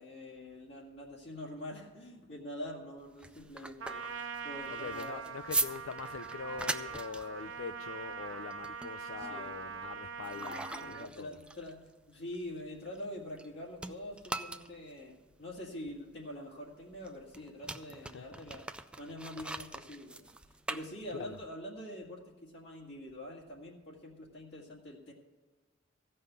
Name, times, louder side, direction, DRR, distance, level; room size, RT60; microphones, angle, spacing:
voice 1, 0.0-5.3 9.2-9.6 10.3-11.8 12.1-18.6 19.0-20.3 20.7-25.1, left 1 dB, 55° left, 2.0 m, -45 dB
sound 1, 3.0-13.5 13.8-21.5, right 2 dB, 5° right, 0.3 m, -41 dB
Trumpet, 3.8-11.1, right 5 dB, 80° right, 0.8 m, -42 dB
voice 2, 4.7-11.4 18.0-18.4 21.1-21.4, left 5 dB, 85° left, 0.4 m, -43 dB
15.5 x 5.5 x 8.0 m
head